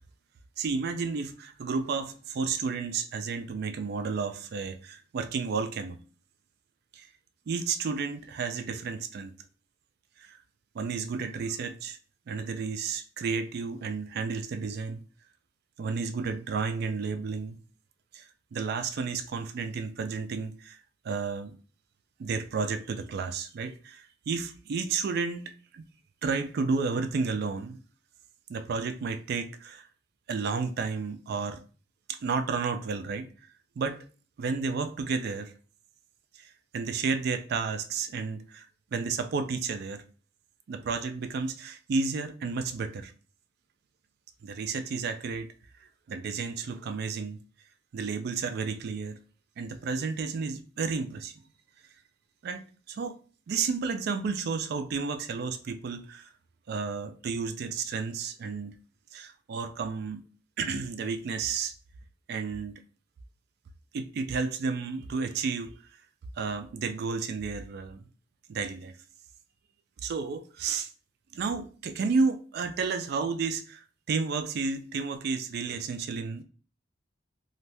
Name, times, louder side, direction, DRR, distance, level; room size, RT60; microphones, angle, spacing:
voice 1, 0.6-6.0 6.9-7.1 7.5-9.3 10.2-10.4 10.7-12.0 12.3-15.0 15.8-17.6 18.1-18.3 18.5-20.8 21.0-21.5 22.2-25.8 26.2-27.8 28.5-29.9 30.3-31.6 32.1-33.3 33.8-34.0 34.4-35.5 36.4-38.7 38.9-40.0 40.7-43.1 44.4-45.5 46.1-47.4 47.9-49.2 49.6-51.3 52.4-53.2 53.5-56.3 56.7-58.7 59.1-60.2 60.6-61.7 62.3-62.8 63.9-65.7 66.4-68.0 68.5-69.0 70.0-70.9 71.3-76.4, right 4 dB, 55° right, 0.3 m, -32 dB
2.6 x 2.2 x 3.2 m
head